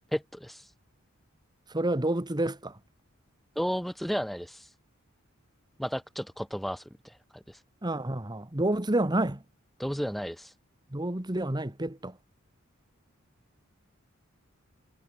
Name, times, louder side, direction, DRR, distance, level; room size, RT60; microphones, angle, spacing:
voice 1, 0.1-0.7 3.6-4.7 5.8-7.6 9.8-10.5, equal, ahead, 0.4 m, -33 dB
voice 2, 1.7-2.8 7.8-9.4 10.9-12.2, right 1 dB, 20° right, 1.6 m, -29 dB
head